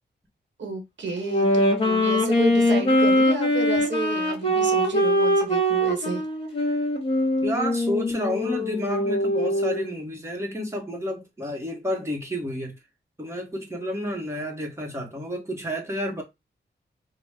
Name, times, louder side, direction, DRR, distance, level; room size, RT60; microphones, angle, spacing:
voice 1, 0.6-6.2, right 3 dB, 90° right, 1.3 m, -31 dB
Wind instrument woodwind instrument, 1.2-9.9, equal, 30° left, 1.6 m, -22 dB
voice 2, 7.4-12.8 13.2-16.2, equal, 15° right, 1.4 m, -30 dB
4.9 x 2.3 x 3.6 m
wide cardioid pair, 120°, 19 cm